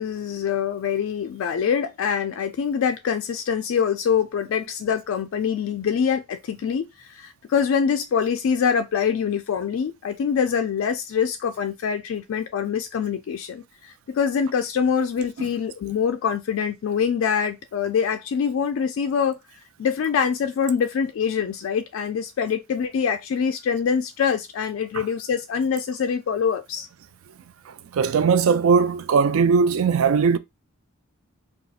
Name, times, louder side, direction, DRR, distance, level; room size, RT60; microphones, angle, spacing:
voice 1, 0.0-19.4 19.8-26.9, left 7 dB, 70° left, 0.3 m, -24 dB
voice 2, 27.9-30.4, right 5 dB, 70° right, 0.4 m, -19 dB
4.1 x 2.3 x 2.3 m
head